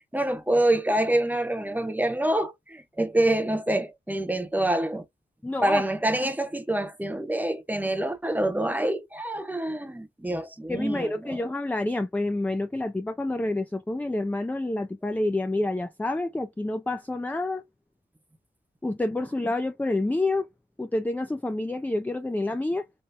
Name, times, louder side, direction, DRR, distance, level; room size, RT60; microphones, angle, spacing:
voice 1, 0.1-5.0 5.6-11.4, right 1 dB, 10° right, 0.8 m, -26 dB
voice 2, 5.4-5.8 6.2-6.3 10.7-17.6 18.8-20.5 20.8-22.9, left 2 dB, 10° left, 0.4 m, -28 dB
3.4 x 3.1 x 2.6 m
wide cardioid pair, 70°, 18 cm